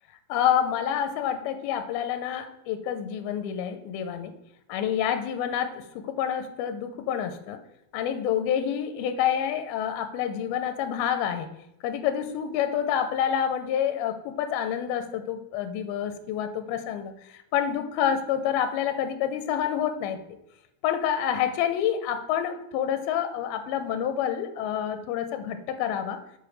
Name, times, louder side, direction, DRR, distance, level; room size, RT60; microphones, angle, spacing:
voice 1, 0.3-4.3 4.7-7.6 7.9-11.5 11.8-20.2 20.8-26.2, left 9 dB, 85° left, 8 dB, 2.5 m, -28 dB
7.1 x 7.0 x 3.1 m, 0.83 s
omnidirectional pair, 4.4 m